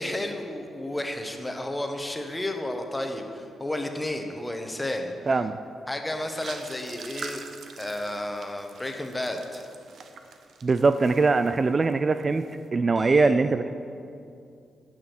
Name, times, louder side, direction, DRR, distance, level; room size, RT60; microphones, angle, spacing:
voice 1, 0.0-5.1 5.9-7.4 7.8-9.6 13.0-13.5, left 1 dB, 15° left, 4 dB, 1.2 m, -32 dB
voice 2, 5.3-5.6 10.6-12.5 12.7-13.7, right 3 dB, 40° right, 10 dB, 0.3 m, -22 dB
sound 1, 6.2-11.9 12.2-12.6, right 5 dB, 70° right, 0.7 m, -44 dB
9.9 x 6.3 x 6.2 m, 2.5 s
cardioid pair, 65°, 0 cm